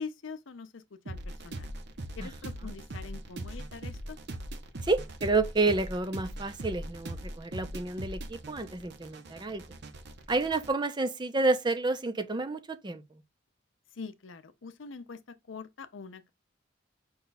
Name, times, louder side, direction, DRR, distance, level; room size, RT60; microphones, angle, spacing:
voice 1, 0.0-1.7 2.2-4.2 13.9-16.3, left 5 dB, 80° left, 0.6 m, -43 dB
sound 1, 1.1-10.7, right 1 dB, 60° right, 0.8 m, -41 dB
voice 2, 4.8-9.6 10.3-13.0, right 3 dB, 25° right, 0.6 m, -29 dB
5.5 x 2.4 x 3.9 m
head